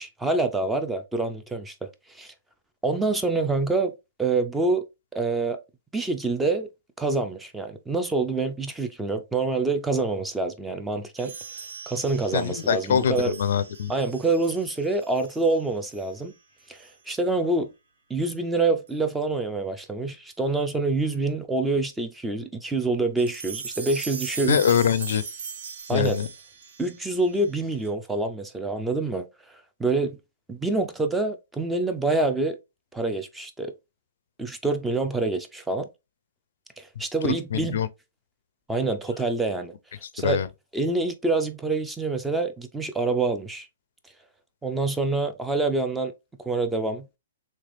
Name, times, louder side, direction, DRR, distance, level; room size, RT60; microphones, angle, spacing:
voice 1, 0.0-1.9 2.1-2.3 2.8-3.9 4.2-4.9 5.1-5.6 5.9-6.7 7.0-11.3 11.9-13.3 13.9-16.3 16.7-17.7 18.1-24.6 25.9-26.2 26.8-29.3 29.8-30.2 30.5-32.6 32.9-33.7 34.4-35.9 36.8-37.8 38.7-39.7 40.1-40.4 40.7-43.7 44.6-46.1 46.4-47.1, right 3 dB, 5° right, 0.3 m, -26 dB
sound 1, 11.2-15.6 15.9-16.1 16.7-16.9 18.2-18.3 18.9-19.0 20.3-20.4 23.2-27.9, right 5 dB, 65° right, 0.8 m, -40 dB
voice 2, 12.3-13.9 24.4-25.2 25.9-26.3 37.5-37.9 40.0-40.5, left 8 dB, 65° left, 0.4 m, -24 dB
3.3 x 3.1 x 2.5 m
hypercardioid pair, 155°, 0 cm